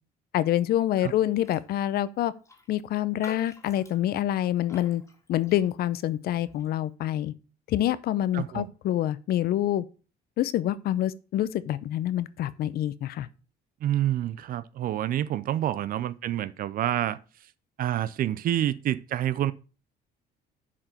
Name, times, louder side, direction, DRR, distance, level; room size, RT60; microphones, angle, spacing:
voice 1, 0.3-2.3 2.7-5.0 5.3-7.3 7.7-9.8 10.4-13.3, left 12 dB, 65° left, 0.7 m, -26 dB
Raindrop, 1.4-1.7 2.0-2.1 2.4-6.0 6.5-6.7, left 2 dB, 15° left, 2.0 m, -51 dB
voice 2, 8.3-8.7 13.8-17.5 17.8-19.5, right 12 dB, 60° right, 0.5 m, -28 dB
7.2 x 4.9 x 6.5 m
cardioid pair, 110°, 17 cm